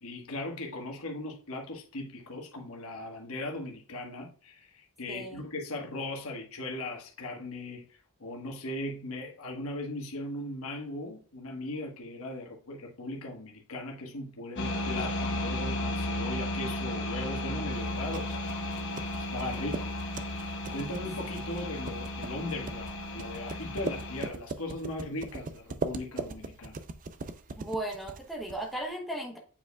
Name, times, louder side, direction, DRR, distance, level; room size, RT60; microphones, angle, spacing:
voice 1, 0.0-7.8 8.2-18.5 19.3-20.0 20.7-26.8, left 1 dB, 70° left, 1.3 m, -38 dB
voice 2, 5.1-5.4 27.6-29.4, right 1 dB, ahead, 0.9 m, -36 dB
sound 1, 14.5-24.3, left 1 dB, 55° left, 1.2 m, -34 dB
sound 2, 17.8-28.9, right 3 dB, 35° right, 0.4 m, -40 dB
8.6 x 4.8 x 2.3 m
head